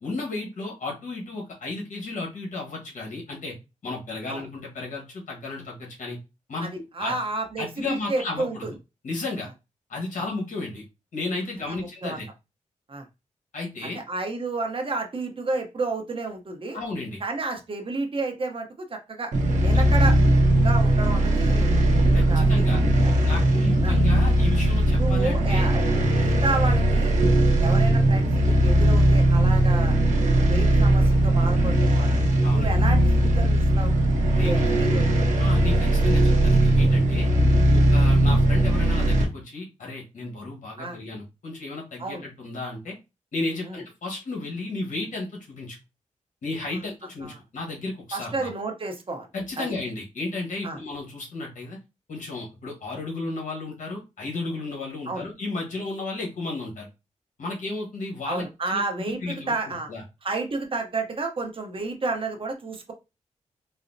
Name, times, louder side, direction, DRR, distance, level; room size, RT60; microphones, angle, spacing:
voice 1, 0.0-3.5 3.8-6.2 6.5-7.1 7.6-8.7 9.0-9.5 9.9-10.8 11.1-12.3 13.5-14.0 16.7-17.2 19.7-19.8 22.1-22.8 23.2-25.7 32.4-32.7 34.3-34.7 35.4-37.3 37.7-42.9 43.3-45.8 46.4-48.5 49.3-51.8 52.1-56.9 57.4-60.0, left 3 dB, 80° left, -1 dB, 1.3 m, -33 dB
voice 2, 6.6-8.7 11.7-12.2 12.9-13.1 13.8-16.8 17.2-19.3 19.6-20.2 20.6-21.8 22.1-22.7 23.8-24.0 25.0-27.1 27.6-30.0 30.4-32.2 32.5-33.9 34.3-35.3 40.8-41.0 42.0-42.2 43.6-43.8 46.7-46.8 47.2-47.4 48.1-49.3 49.6-49.7 50.6-50.8 55.1-55.2 58.3-59.9 60.2-62.9, right 3 dB, 45° right, 4 dB, 0.8 m, -31 dB
sound 1, 19.3-39.2, right 1 dB, 75° right, 0.8 m, -19 dB
4.0 x 2.0 x 2.6 m, 0.26 s
cardioid pair, 70°, 13 cm